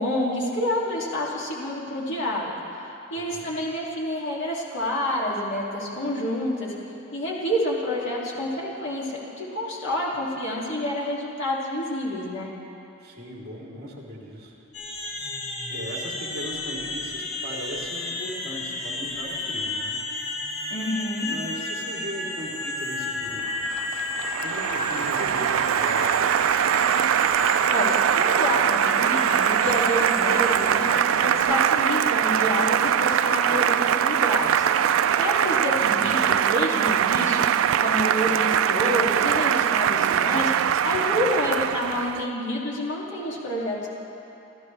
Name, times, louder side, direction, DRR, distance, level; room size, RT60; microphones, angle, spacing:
voice 1, 0.0-2.5 3.1-6.7 7.1-12.5 20.7-21.3 27.7-30.9 31.2-34.7 35.1-37.4 37.8-40.5 40.8-43.9, left 1 dB, 60° left, -5 dB, 2.4 m, -28 dB
voice 2, 13.0-14.5 15.7-20.0 21.3-23.8 24.4-26.4 35.9-36.1, equal, 45° right, -4 dB, 3.2 m, -38 dB
sound 1, 14.7-31.4, left 1 dB, 80° left, 3.5 m, -32 dB
Applause, 23.4-42.3, right 9 dB, 70° right, 0.3 m, -22 dB
28.0 x 14.5 x 3.3 m, 2.8 s
head